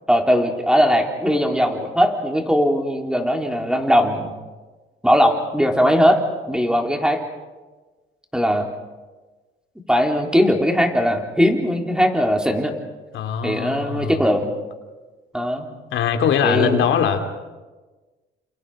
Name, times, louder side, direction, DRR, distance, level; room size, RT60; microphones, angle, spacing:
voice 1, 0.1-4.3 5.0-6.2 6.5-7.2 8.3-8.7 9.9-12.7 13.4-14.5 15.3-15.7 16.4-16.8, equal, 5° right, 2 dB, 3.9 m, -19 dB
voice 2, 13.1-14.2 15.9-17.2, left 7 dB, 80° left, 5 dB, 2.9 m, -21 dB
29.5 x 28.0 x 5.1 m, 1.3 s
cardioid pair, 90°, 20 cm